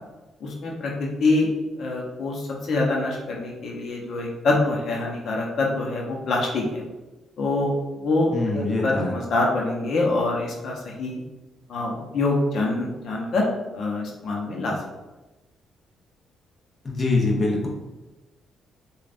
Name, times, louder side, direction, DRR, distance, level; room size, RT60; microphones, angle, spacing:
voice 1, 0.4-1.5 1.8-6.8 7.4-11.2 11.7-13.4 13.7-14.8, left 2 dB, 65° left, -1 dB, 0.8 m, -25 dB
voice 2, 8.3-9.1 16.8-17.7, left 2 dB, 30° left, -2 dB, 0.7 m, -23 dB
5.0 x 2.4 x 2.5 m, 1.1 s
cardioid pair, 90°, 0 cm